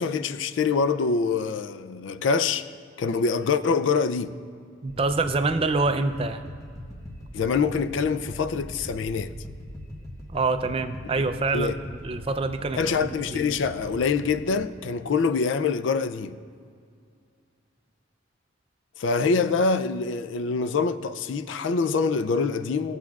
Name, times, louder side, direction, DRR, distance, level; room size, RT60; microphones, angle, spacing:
voice 1, 0.0-2.7 3.0-4.3 7.3-9.3 11.5-11.8 12.8-16.3 19.0-23.0, left 5 dB, 70° left, 0.4 m, -25 dB
voice 2, 4.8-6.4 10.3-11.8 12.0-13.6, right 3 dB, 30° right, 0.4 m, -26 dB
sound 1, 4.9-14.5, left 1 dB, 15° left, 0.9 m, -41 dB
18.5 x 7.2 x 2.3 m
head